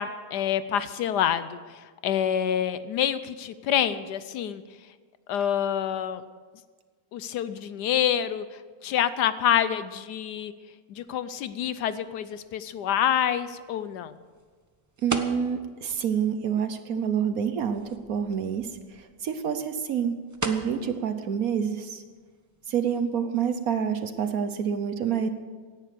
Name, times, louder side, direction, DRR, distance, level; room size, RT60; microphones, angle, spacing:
voice 1, 0.0-4.6 5.3-6.2 7.1-10.5 10.9-14.1, left 9 dB, 70° left, 14 dB, 1.1 m, -27 dB
sound 1, 11.0-24.2, right 2 dB, 20° right, 0.5 m, -42 dB
voice 2, 15.0-18.7 18.9-20.2 20.4-22.0 22.7-25.3, right 7 dB, 60° right, 9 dB, 1.1 m, -27 dB
17.0 x 10.5 x 6.8 m, 1.5 s
omnidirectional pair, 2.0 m